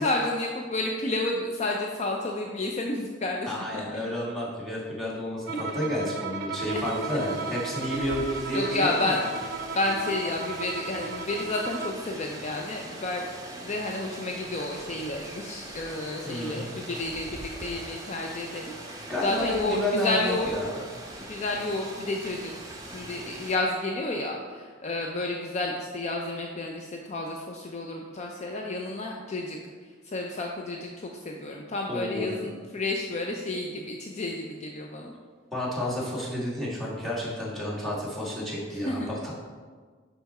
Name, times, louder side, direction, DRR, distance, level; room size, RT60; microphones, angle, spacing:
voice 1, 0.0-4.0 5.5-5.6 6.7-6.8 7.1-7.5 7.9-8.1 8.5-9.2 9.7-13.3 13.6-20.5 21.2-22.5 22.8-29.6 30.0-35.1 38.7-39.1, left 2 dB, 35° left, 1 dB, 0.5 m, -31 dB
voice 2, 3.5-9.2 16.2-16.7 19.1-20.7 31.9-32.5 35.5-39.3, left 1 dB, ahead, -8 dB, 1.8 m, -30 dB
Bowed string instrument, 5.5-12.1, right 4 dB, 60° right, 0.5 m, -35 dB
Rain, 6.6-23.6, right 1 dB, 20° right, 0.9 m, -42 dB
5.8 x 5.7 x 4.2 m, 1.5 s
head